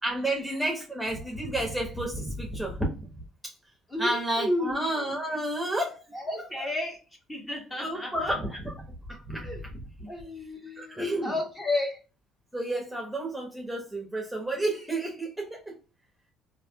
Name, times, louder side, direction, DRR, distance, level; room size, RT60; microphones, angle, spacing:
voice 1, 0.0-2.9 3.4-3.5 4.0-6.0 6.6-6.7 7.8-8.7 9.1-9.7 10.0-10.1 10.8-11.4 12.5-15.8, right 1 dB, 5° right, 1.0 m, -31 dB
voice 2, 3.9-4.8 6.1-7.0 7.3-8.4 9.4-9.6 10.1-12.0, left 1 dB, 20° left, 1.4 m, -32 dB
3.3 x 2.6 x 2.3 m
supercardioid pair, 75°, 0 cm